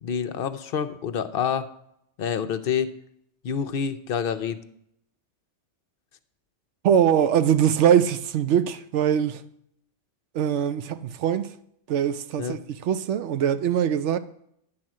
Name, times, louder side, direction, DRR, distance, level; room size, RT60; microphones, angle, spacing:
voice 1, 0.0-1.7 2.2-2.9 3.4-4.6 12.4-12.6, left 7 dB, 60° left, 0.8 m, -27 dB
voice 2, 6.8-9.4 10.3-11.5 11.9-14.2, right 9 dB, 75° right, 0.9 m, -22 dB
10.5 x 4.2 x 7.5 m
omnidirectional pair, 1.2 m